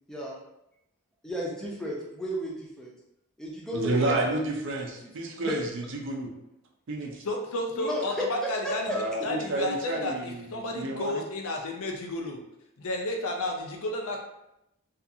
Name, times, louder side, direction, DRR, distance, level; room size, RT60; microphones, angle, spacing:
voice 1, 1.2-2.9 3.4-4.8 5.4-5.5 7.8-9.3, equal, 5° left, -4 dB, 0.4 m, -34 dB
voice 2, 3.7-6.3 6.9-7.2 8.9-11.2, right 2 dB, 55° right, 1 dB, 0.4 m, -30 dB
voice 3, 7.2-12.4 12.8-14.2, left 1 dB, 70° left, 2 dB, 0.5 m, -32 dB
2.4 x 2.4 x 2.7 m, 0.85 s
head